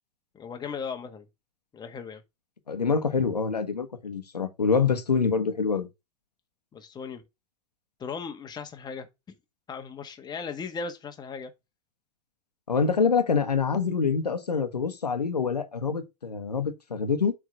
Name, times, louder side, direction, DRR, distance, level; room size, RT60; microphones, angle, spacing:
voice 1, 0.3-1.2 1.7-2.2 6.7-7.2 8.0-9.1 9.7-11.5, left 5 dB, 20° left, 1.4 m, -37 dB
voice 2, 2.7-5.9 12.7-17.3, left 5 dB, 85° left, 1.2 m, -26 dB
7.8 x 3.8 x 4.9 m
hypercardioid pair, 95°, 20 cm